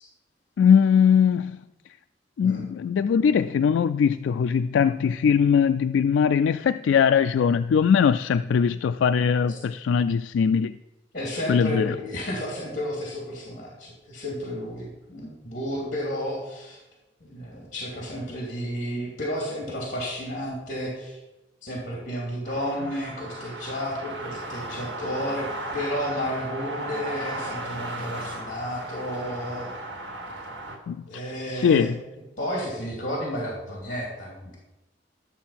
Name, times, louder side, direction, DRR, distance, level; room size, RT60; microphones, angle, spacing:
voice 1, 0.6-1.6 2.4-10.7 11.5-11.9 30.9-31.0 31.5-32.0, left 7 dB, 85° left, 10 dB, 0.3 m, -21 dB
voice 2, 11.1-16.8 17.2-21.2 21.6-25.5 25.7-29.7 31.0-31.9 32.4-34.6, equal, 45° left, -2 dB, 2.9 m, -32 dB
sound 1, 22.4-30.8, right 1 dB, 75° right, 2.1 m, -35 dB
12.0 x 7.0 x 5.7 m, 1.0 s
head